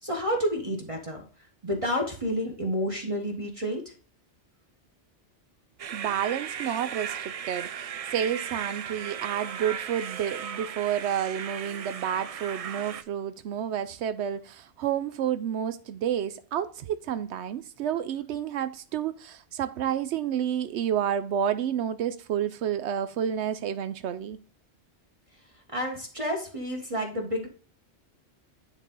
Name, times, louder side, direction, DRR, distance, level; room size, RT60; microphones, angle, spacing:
voice 1, 0.0-1.2 1.6-3.8 25.7-27.5, equal, 30° right, 1.5 m, -30 dB
sound 1, 5.8-13.0, right 8 dB, 60° right, 0.3 m, -36 dB
voice 2, 5.9-24.4, right 9 dB, 85° right, 0.9 m, -30 dB
9.9 x 4.0 x 3.8 m
omnidirectional pair, 1.1 m